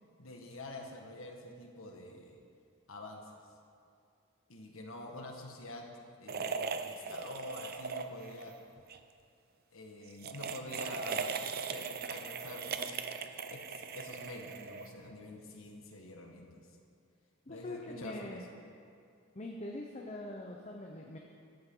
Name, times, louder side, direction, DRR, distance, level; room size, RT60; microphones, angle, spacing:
voice 1, 0.2-2.4 2.9-3.4 4.5-5.9 6.2-8.6 9.7-11.4 11.7-16.6 17.5-18.4, left 2 dB, 75° left, 1 dB, 1.8 m, -47 dB
sound 1, 6.3-8.5 8.8-9.0 10.1-15.1, right 5 dB, 45° right, 0.6 m, -39 dB
voice 2, 17.5-18.4 19.3-21.2, left 1 dB, 30° left, 0 dB, 0.9 m, -43 dB
16.5 x 13.0 x 3.9 m, 2.4 s
head